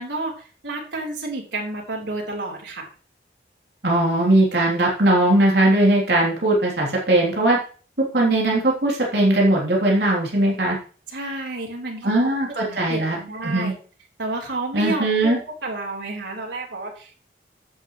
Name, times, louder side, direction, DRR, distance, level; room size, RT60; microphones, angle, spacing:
voice 1, 0.0-2.9 11.1-12.3 12.6-13.8 14.2-17.3, right 2 dB, 90° right, -1 dB, 4.1 m, -31 dB
voice 2, 3.8-7.6 8.1-10.8 12.0-13.2 13.4-13.7 14.7-15.4, right 1 dB, 65° right, -3 dB, 3.3 m, -19 dB
11.5 x 8.5 x 3.2 m, 0.39 s
head